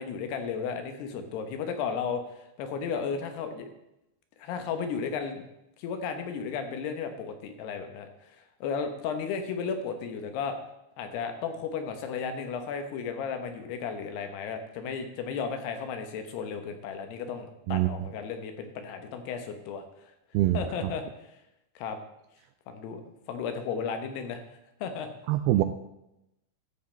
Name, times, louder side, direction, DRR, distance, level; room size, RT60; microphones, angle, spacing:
voice 1, 0.0-3.7 4.4-5.4 5.8-8.1 8.6-10.6 11.0-20.1 20.5-21.0 21.8-22.0 22.7-23.0 23.3-24.4 24.8-25.1, left 6 dB, 75° left, 7 dB, 3.0 m, -34 dB
voice 2, 17.7-18.1 20.3-20.9 25.3-25.6, right 15 dB, 85° right, 9 dB, 2.3 m, -25 dB
13.0 x 7.5 x 4.4 m, 0.87 s
omnidirectional pair, 4.9 m